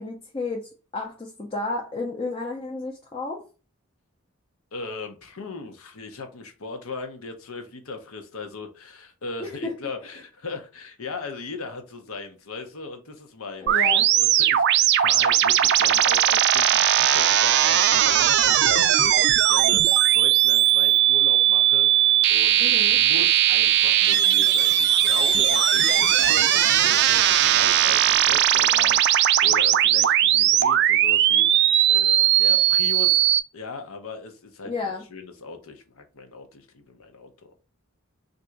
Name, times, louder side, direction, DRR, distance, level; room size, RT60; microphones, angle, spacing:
voice 1, 0.0-3.4 9.4-9.7 13.6-14.1 22.6-23.0 34.6-35.0, left 3 dB, 25° left, -1 dB, 0.6 m, -32 dB
voice 2, 4.7-33.2 33.5-37.5, left 4 dB, 75° left, 6 dB, 0.8 m, -38 dB
sound 1, 13.7-33.4, right 11 dB, 50° right, 0.3 m, -19 dB
3.6 x 2.6 x 4.4 m, 0.34 s
head